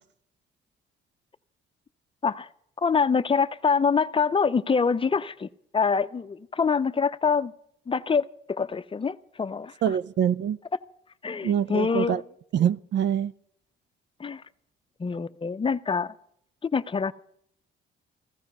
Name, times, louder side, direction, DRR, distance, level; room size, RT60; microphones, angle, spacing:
voice 1, 2.8-5.5 5.7-7.5 7.9-10.0 11.2-12.2 14.2-14.4 15.0-16.1 16.6-17.1, left 5 dB, 25° left, 0.6 m, -25 dB
voice 2, 9.8-10.6 11.4-12.2 12.5-13.3, right 9 dB, 65° right, 0.5 m, -24 dB
15.5 x 13.0 x 5.5 m
cardioid pair, 90°, 20 cm